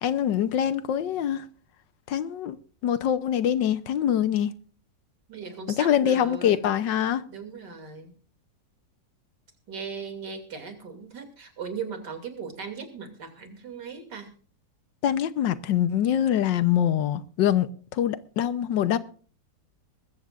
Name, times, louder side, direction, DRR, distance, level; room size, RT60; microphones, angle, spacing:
voice 1, 0.0-1.4 2.1-2.6 2.8-4.5 5.8-7.2 15.0-19.0, left 10 dB, 90° left, 1.6 m, -24 dB
voice 2, 5.3-6.7 7.3-8.1 9.7-14.3, right 5 dB, 70° right, 3.3 m, -38 dB
21.5 x 14.0 x 2.5 m
omnidirectional pair, 1.9 m